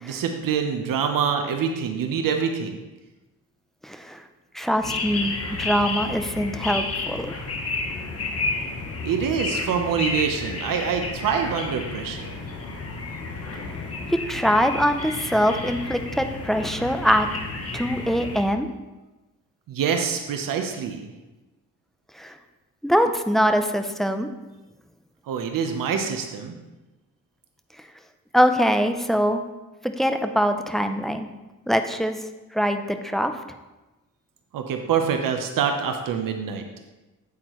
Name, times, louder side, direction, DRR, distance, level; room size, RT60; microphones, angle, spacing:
voice 1, 0.0-2.8 9.0-12.3 19.7-21.1 25.3-26.6 34.5-36.6, right 7 dB, 85° right, 5 dB, 0.8 m, -25 dB
voice 2, 3.8-4.2 4.5-7.3 14.1-17.3 17.7-18.7 22.1-22.4 22.8-24.3 28.3-29.4 29.8-31.3 31.7-32.2 32.5-33.4, equal, ahead, 7 dB, 0.4 m, -23 dB
sound 1, 4.8-18.4, left 3 dB, 45° left, 1.2 m, -31 dB
8.5 x 8.1 x 3.1 m, 1.1 s
cardioid pair, 130°, 32 cm